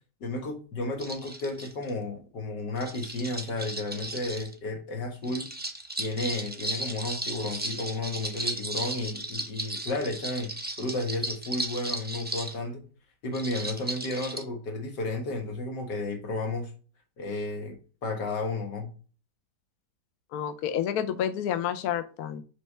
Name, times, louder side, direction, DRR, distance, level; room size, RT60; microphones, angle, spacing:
voice 1, 0.2-5.5 6.0-10.5 10.8-12.8 13.2-16.7 17.2-18.9, left 2 dB, 85° left, 2.1 m, -32 dB
sound 1, 1.0-1.9 2.8-4.5 5.2-12.6 13.3-14.4, right 1 dB, 15° right, 0.3 m, -35 dB
voice 2, 20.3-22.4, left 9 dB, 70° left, 1.0 m, -29 dB
5.4 x 3.3 x 5.4 m
omnidirectional pair, 1.8 m